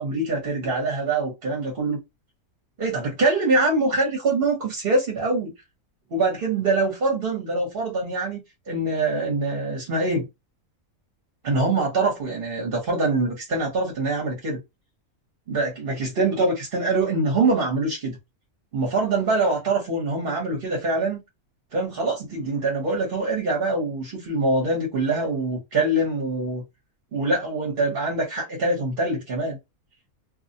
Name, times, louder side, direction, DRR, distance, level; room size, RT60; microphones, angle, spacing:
voice 1, 0.0-2.0 2.8-5.5 6.1-8.4 8.7-10.2 11.4-14.6 15.5-18.2 18.7-21.2 21.7-26.6 27.1-29.6, right 2 dB, 45° right, 0.8 m, -24 dB
2.4 x 2.0 x 2.6 m
omnidirectional pair, 1.5 m